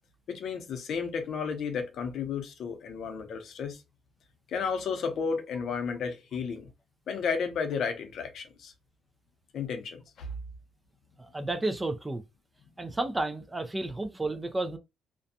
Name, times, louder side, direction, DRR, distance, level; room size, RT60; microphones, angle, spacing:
voice 1, 0.3-3.8 4.5-6.7 7.1-8.7 9.5-10.3, left 6 dB, 65° left, 0.7 m, -33 dB
voice 2, 11.2-12.2 12.8-14.8, right 2 dB, 20° right, 0.5 m, -32 dB
2.5 x 2.2 x 2.6 m
cardioid pair, 90°, 0 cm